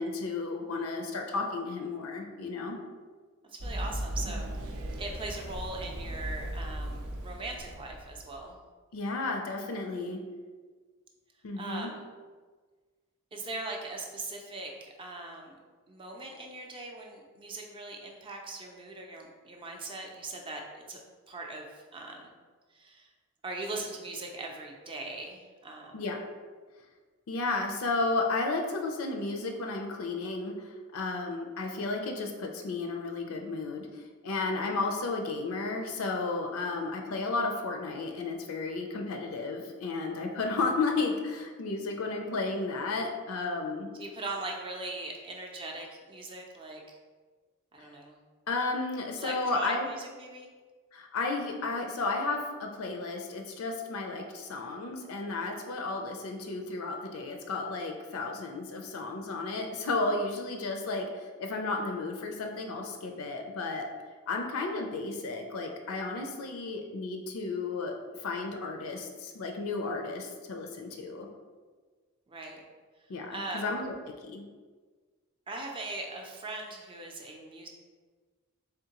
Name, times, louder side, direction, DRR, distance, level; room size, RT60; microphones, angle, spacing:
voice 1, 0.0-2.8 8.9-10.2 11.4-11.9 25.9-26.2 27.3-43.9 48.5-49.9 50.9-63.9 64.3-67.9 68.2-71.3 73.1-73.9 74.2-74.4, left 3 dB, 75° left, 3 dB, 0.5 m, -33 dB
voice 2, 3.5-8.6 11.6-12.1 13.3-15.5 15.9-21.0 21.3-22.3 22.7-23.1 23.4-26.0 43.9-47.0 47.7-48.2 49.2-50.5 72.3-72.6 73.3-73.7 75.5-77.7, right 2 dB, 25° right, 1 dB, 0.4 m, -40 dB
Run, 3.6-8.4, right 1 dB, 75° right, 0.6 m, -37 dB
3.6 x 3.5 x 2.9 m, 1.4 s
head